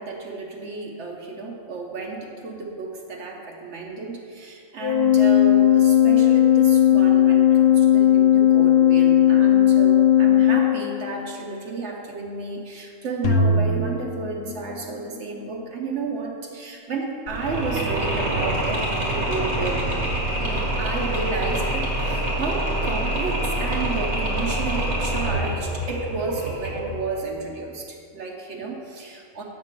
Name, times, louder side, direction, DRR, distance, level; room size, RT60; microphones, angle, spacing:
voice 1, 0.0-19.9 20.4-29.4, right 3 dB, 65° right, 0 dB, 1.0 m, -32 dB
Organ, 4.8-11.3, left 11 dB, 50° left, 0.7 m, -16 dB
sound 1, 13.2-15.4, equal, 80° left, 0.9 m, -23 dB
Mechanisms, 17.3-27.0, right 1 dB, 90° right, 2.1 m, -26 dB
8.1 x 3.7 x 6.4 m, 2.4 s
omnidirectional pair, 1.3 m